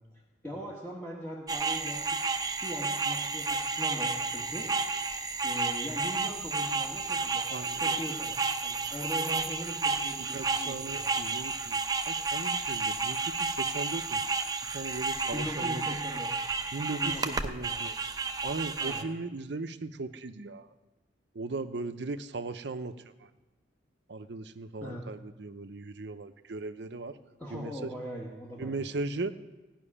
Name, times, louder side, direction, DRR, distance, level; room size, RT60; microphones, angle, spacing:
voice 1, 0.4-4.7 5.4-11.1 15.3-16.3 16.9-17.8 18.8-19.0 24.8-25.0 27.4-28.9, equal, 10° left, -3 dB, 1.4 m, -40 dB
sound 1, 1.5-19.0, right 4 dB, 20° right, 0.6 m, -31 dB
voice 2, 7.5-7.9 10.3-14.2 14.7-15.8 16.7-18.0 18.4-20.7 21.3-22.9 23.2-23.3 24.1-27.2 27.5-27.9 28.6-29.3, right 3 dB, 65° right, 11 dB, 0.6 m, -38 dB
16.0 x 6.0 x 9.9 m, 1.1 s
head